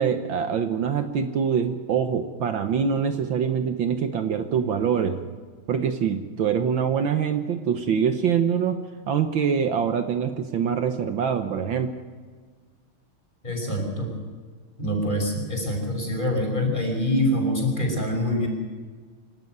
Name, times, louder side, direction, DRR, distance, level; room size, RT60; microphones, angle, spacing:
voice 1, 0.0-5.2 5.7-8.8 9.1-11.9, right 7 dB, 65° right, 8 dB, 1.7 m, -24 dB
voice 2, 13.4-14.1 14.8-18.5, left 1 dB, 20° left, 1 dB, 5.8 m, -25 dB
26.0 x 13.0 x 9.4 m, 1.5 s
omnidirectional pair, 2.4 m